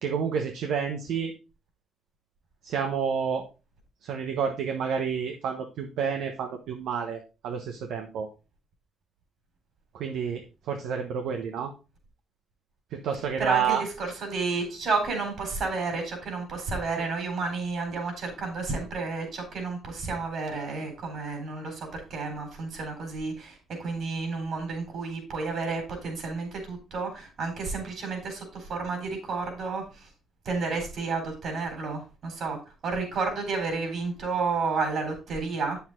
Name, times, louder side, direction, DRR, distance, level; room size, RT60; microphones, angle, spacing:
voice 1, 0.0-1.3 2.6-3.4 4.0-8.3 9.9-11.7 12.9-13.8, right 7 dB, 85° right, 4 dB, 1.1 m, -29 dB
voice 2, 13.4-30.1 30.4-35.8, right 4 dB, 65° right, 4 dB, 4.2 m, -31 dB
8.1 x 7.1 x 3.7 m, 0.30 s
cardioid pair, 90°, 0 cm